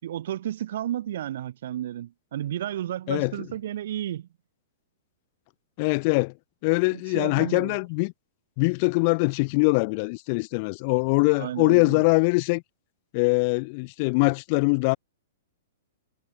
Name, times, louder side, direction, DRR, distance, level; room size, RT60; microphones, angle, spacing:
voice 1, 0.0-4.3 6.9-7.8 11.4-12.0, right 12 dB, 65° right, 7.6 m, -32 dB
voice 2, 5.8-6.3 6.6-8.1 8.6-12.6 13.1-15.0, left 31 dB, 40° left, 7.1 m, -23 dB
hypercardioid pair, 145°, 0 cm